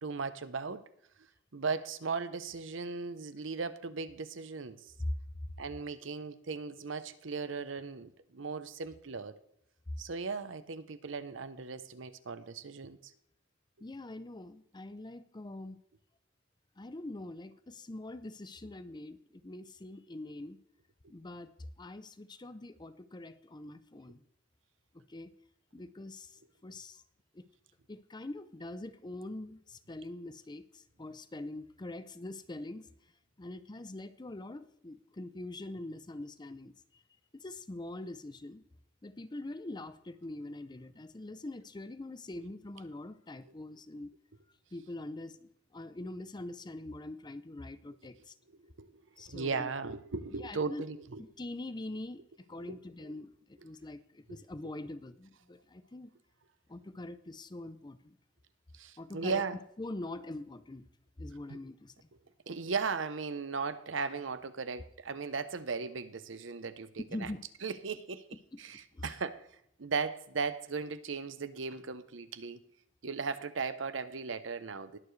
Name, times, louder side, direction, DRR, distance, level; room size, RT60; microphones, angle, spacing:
voice 1, 0.0-0.8 1.5-4.8 5.6-9.3 10.0-13.0 42.4-42.5 48.8-48.9 49.3-51.2 52.6-53.2 58.8-59.6 61.5-61.6 62.5-67.3 67.6-68.2 68.6-69.4 69.8-72.6 73.0-75.0, right 4 dB, 75° right, 12 dB, 0.8 m, -37 dB
voice 2, 13.8-15.8 16.8-20.6 21.1-24.2 24.9-25.3 25.7-27.0 27.3-27.4 27.9-32.9 33.4-36.7 37.3-38.6 39.0-44.1 44.7-48.3 49.2-49.7 50.4-50.8 51.2-52.2 52.5-56.1 56.7-58.1 59.0-59.4 59.8-60.8 61.2-62.1 67.1-67.4 68.5-68.6 68.9-69.1, left 2 dB, 25° left, 13 dB, 0.6 m, -43 dB
20.5 x 7.0 x 3.2 m, 0.75 s
head